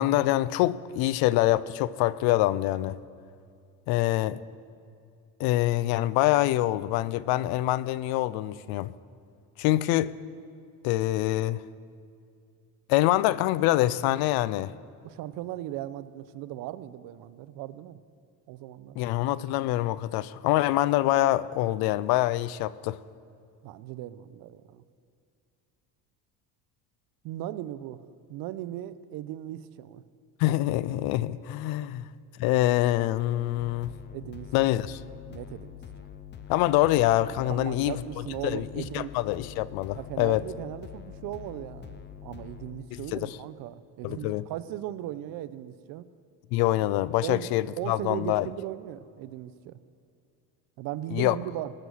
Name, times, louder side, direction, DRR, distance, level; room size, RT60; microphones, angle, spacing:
voice 1, 0.0-3.0 3.9-4.4 5.4-8.9 9.6-10.1 10.8-11.6 12.9-14.7 19.0-23.0 30.4-32.0 32.4-33.9 34.5-35.0 36.5-37.9 38.4-40.4 42.9-43.3 44.0-44.4 46.5-48.5 51.1-51.3, left 15 dB, 75° left, 0.5 m, -25 dB
voice 2, 15.0-18.0 18.5-19.0 23.6-24.8 27.2-30.0 34.1-34.7 35.3-36.1 37.5-39.2 39.9-46.1 47.2-49.8 50.8-51.7, right 13 dB, 65° right, 0.6 m, -38 dB
sound 1, 33.6-42.8, left 9 dB, 30° left, 0.6 m, -45 dB
19.0 x 6.5 x 6.3 m
cardioid pair, 135°, 38 cm